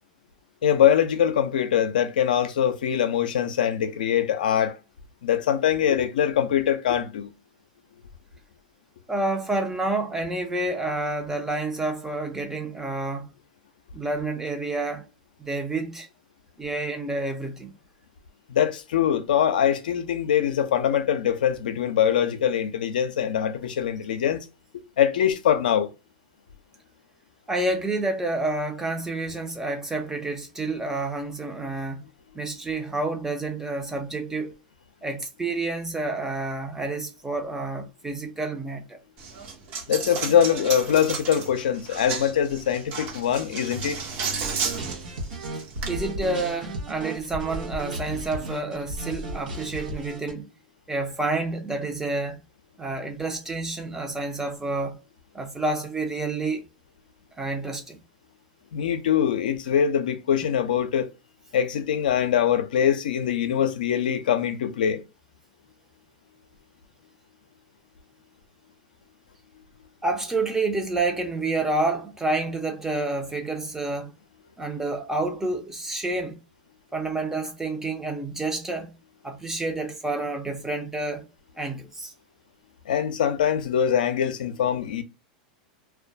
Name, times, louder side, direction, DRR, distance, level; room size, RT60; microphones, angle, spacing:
voice 1, 0.6-4.8 5.2-7.3 18.5-24.4 25.0-25.9 39.9-44.0 58.7-61.1 61.5-65.0 82.9-85.0, left 9 dB, 85° left, 0.4 m, -23 dB
voice 2, 9.1-13.3 13.9-15.1 15.4-16.1 16.6-17.7 27.5-32.0 32.3-34.6 35.0-39.0 45.9-50.5 50.9-52.4 52.8-55.0 55.3-56.6 57.4-58.0 70.0-74.1 74.6-76.4 76.9-78.9 79.2-81.3 81.6-82.1, right 2 dB, 10° right, 0.5 m, -29 dB
Coin (dropping), 39.2-45.9, right 5 dB, 45° right, 0.7 m, -33 dB
sound 1, 44.4-50.3, right 1 dB, 80° right, 0.8 m, -34 dB
2.2 x 2.1 x 2.6 m
hypercardioid pair, 120°, 5 cm